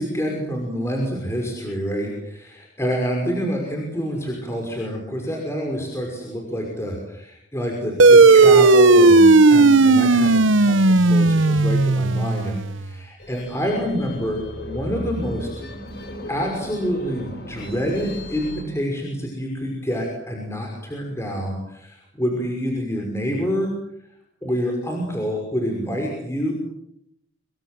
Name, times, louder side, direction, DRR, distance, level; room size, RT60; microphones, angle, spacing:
voice 1, 0.0-15.6 16.3-23.7 24.4-26.5, equal, 15° left, 1 dB, 5.8 m, -27 dB
sound 1, 8.0-12.9, right 3 dB, 80° right, 1.0 m, -14 dB
sound 2, 13.2-18.6, left 1 dB, 55° left, 6.5 m, -36 dB
26.5 x 24.0 x 7.8 m, 0.76 s
head